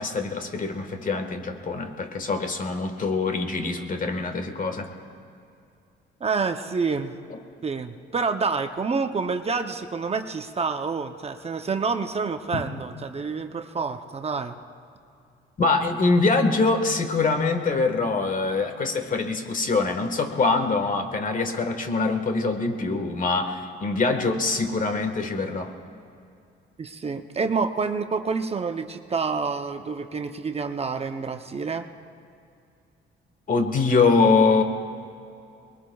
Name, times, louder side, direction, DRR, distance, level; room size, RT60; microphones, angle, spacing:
voice 1, 0.0-4.9 12.5-12.6 15.6-25.7 33.5-34.6, left 3 dB, 40° left, 6 dB, 1.5 m, -24 dB
voice 2, 6.2-7.2 7.6-14.5 26.8-31.9, right 4 dB, 30° right, 7 dB, 0.7 m, -28 dB
23.5 x 21.0 x 2.3 m, 2.5 s
cardioid pair, 90°, 20 cm